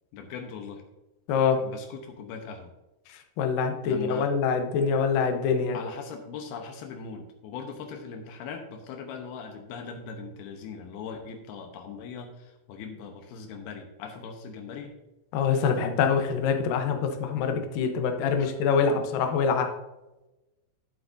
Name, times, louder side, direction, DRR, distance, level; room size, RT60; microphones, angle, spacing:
voice 1, 0.1-0.8 1.6-2.7 3.8-4.3 5.7-14.9 18.4-18.5, left 5 dB, 90° left, 4 dB, 2.9 m, -40 dB
voice 2, 1.3-1.6 3.1-5.8 15.3-19.7, left 6 dB, 70° left, 5 dB, 2.5 m, -25 dB
11.5 x 8.1 x 2.6 m, 1.0 s
omnidirectional pair, 4.4 m